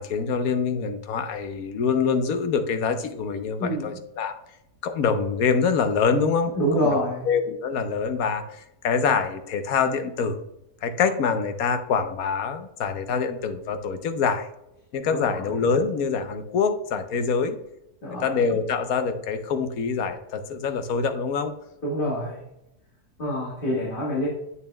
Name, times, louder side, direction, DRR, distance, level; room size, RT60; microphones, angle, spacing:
voice 1, 0.0-4.3 4.8-6.5 6.9-7.0 7.3-10.4 10.8-14.5 14.9-17.6 18.2-21.5, left 5 dB, 70° left, 9 dB, 1.1 m, -25 dB
voice 2, 3.6-4.0 6.5-7.3 15.1-15.4 18.0-18.3 21.8-22.4 23.2-24.3, equal, 35° left, -5 dB, 1.6 m, -26 dB
8.4 x 6.9 x 2.2 m, 0.82 s
omnidirectional pair, 1.7 m